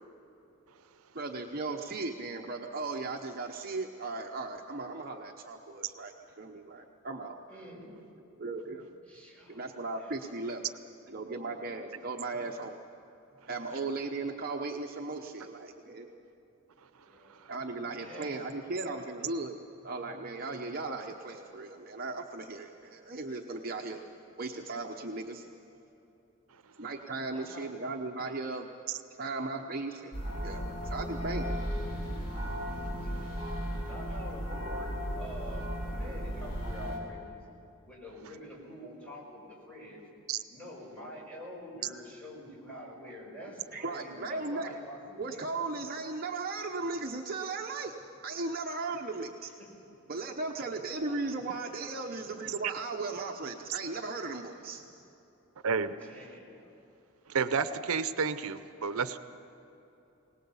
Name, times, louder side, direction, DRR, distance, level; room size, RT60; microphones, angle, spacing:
voice 1, 1.1-7.4 8.4-8.9 9.5-10.6 11.1-12.8 13.5-16.1 17.5-19.5 19.8-24.0 24.4-25.5 26.8-28.7 29.1-30.1 30.4-31.5 43.7-44.7 45.2-47.9 48.2-49.5 50.1-54.8, right 3 dB, 40° right, 2 dB, 0.9 m, -37 dB
voice 2, 7.5-8.0 9.1-10.1 10.7-10.8 17.1-17.3 18.0-19.0 27.2-27.7 28.2-28.3 33.0-33.5 33.8-37.4 37.8-40.0 40.5-45.6 49.6-49.7 51.1-51.2 56.0-56.8, equal, 5° left, -4 dB, 5.1 m, -47 dB
sound 1, 30.1-37.0, equal, 80° left, 6.9 m, -35 dB
voice 3, 55.6-56.0 57.3-59.2, right 5 dB, 80° right, 12 dB, 0.7 m, -30 dB
21.0 x 19.0 x 7.1 m, 3.0 s
head